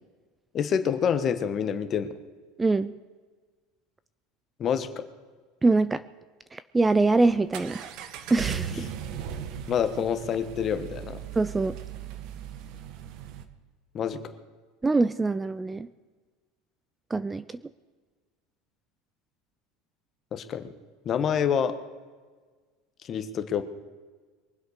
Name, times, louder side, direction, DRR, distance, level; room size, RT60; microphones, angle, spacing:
voice 1, 0.5-2.1 4.6-5.0 9.7-11.2 13.9-14.2 20.3-20.7 21.0-21.7 23.0-23.6, left 7 dB, 35° left, 10 dB, 1.3 m, -27 dB
voice 2, 2.6-2.9 5.6-6.0 6.5-7.9 8.3-8.9 11.4-11.8 14.8-15.9 17.1-17.4, right 3 dB, 10° right, 15 dB, 0.4 m, -24 dB
Accelerating revving vroom, 6.9-13.5, right 9 dB, 60° right, 1.3 m, -38 dB
23.0 x 8.0 x 6.5 m, 1.4 s
supercardioid pair, 140°, 0 cm